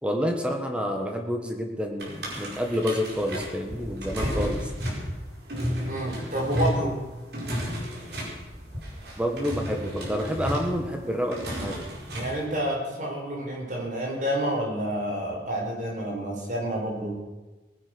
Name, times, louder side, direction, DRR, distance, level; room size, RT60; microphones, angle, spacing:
voice 1, 0.0-4.7 6.7-6.8 9.2-11.9, equal, 5° right, 3 dB, 1.5 m, -29 dB
sound 1, 2.0-12.4, equal, 65° right, 4.6 m, -32 dB
voice 2, 5.8-6.9 12.1-17.2, right 1 dB, 45° right, -2 dB, 5.0 m, -29 dB
19.5 x 10.0 x 6.3 m, 1.1 s
head